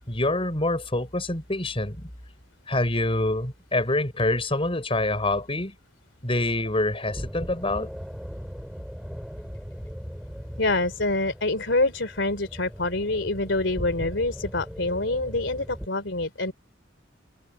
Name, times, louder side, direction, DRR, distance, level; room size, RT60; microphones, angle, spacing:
voice 1, 0.1-2.1 2.7-5.7 6.2-7.9, left 2 dB, 30° left, 5.3 m, -26 dB
sound 1, 7.1-15.9, equal, ahead, 3.0 m, -38 dB
voice 2, 10.6-16.5, left 2 dB, 70° left, 3.3 m, -26 dB
head